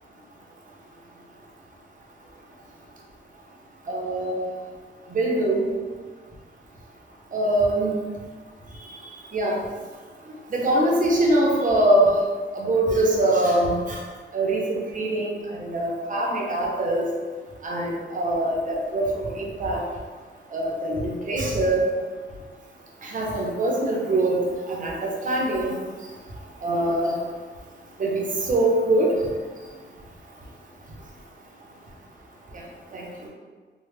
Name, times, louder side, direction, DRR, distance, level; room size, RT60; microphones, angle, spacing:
voice 1, 3.9-4.4 5.1-5.7 7.3-7.9 8.9-9.0 9.3-9.6 10.5-12.2 12.5-14.0 14.3-17.1 17.6-19.8 20.5-21.8 23.0-25.8 26.6-27.2 28.0-29.2 32.5-32.6 32.9-33.3, right 1 dB, 40° right, -2 dB, 0.6 m, -23 dB
3.1 x 2.0 x 3.2 m, 1.5 s
wide cardioid pair, 165°, 20 cm